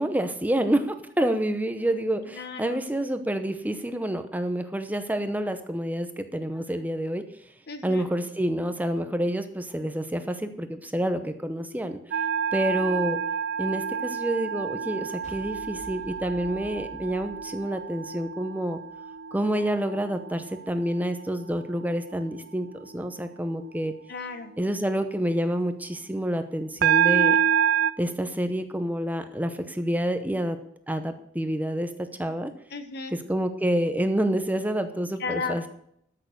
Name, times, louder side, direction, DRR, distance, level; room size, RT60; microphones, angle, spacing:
voice 1, 0.0-7.2 7.8-12.0 12.5-13.2 13.6-18.8 19.3-23.9 24.6-27.4 28.0-30.6 30.9-32.5 33.1-35.7, right 1 dB, 10° right, 8 dB, 0.7 m, -28 dB
voice 2, 2.3-2.8 7.7-8.1 24.1-24.5 32.7-33.1 35.2-35.7, left 4 dB, 55° left, 8 dB, 1.4 m, -34 dB
sound 1, 12.1-20.4 20.8-21.2 26.8-27.9, right 8 dB, 55° right, 0.4 m, -27 dB
sound 2, 15.2-18.5, left 1 dB, 40° left, 3.8 m, -48 dB
13.0 x 6.6 x 6.6 m, 0.70 s
head